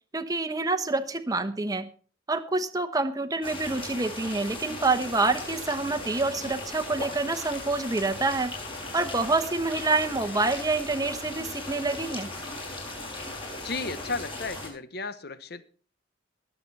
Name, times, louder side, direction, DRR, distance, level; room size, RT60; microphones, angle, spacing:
voice 1, 0.1-1.9 2.3-8.5 8.9-12.3, right 3 dB, 20° right, 1.0 m, -27 dB
sound 1, 3.4-14.7, left 2 dB, 30° left, 5.7 m, -38 dB
voice 2, 13.6-15.6, left 3 dB, 55° left, 1.1 m, -34 dB
20.5 x 7.9 x 4.2 m
head